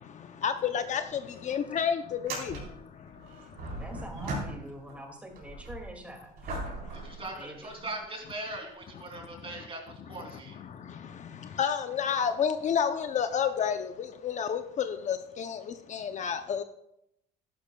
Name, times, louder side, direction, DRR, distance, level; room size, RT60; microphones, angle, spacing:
voice 1, 0.0-4.0 6.7-7.2 9.1-9.7 10.1-16.6, left 7 dB, 45° left, 8 dB, 0.6 m, -32 dB
sound 1, 0.9-1.0 1.2-1.3 2.1-5.0 5.3-8.0 8.7-8.8 12.9-13.0 14.4-14.5, right 2 dB, 65° right, 4.0 m, -39 dB
voice 2, 3.7-6.5 7.3-7.8, right 1 dB, 10° right, 2 dB, 2.3 m, -45 dB
voice 3, 6.9-10.6, right 2 dB, 35° right, 2 dB, 2.9 m, -40 dB
12.5 x 11.5 x 2.3 m, 0.79 s
cardioid pair, 110°, 17 cm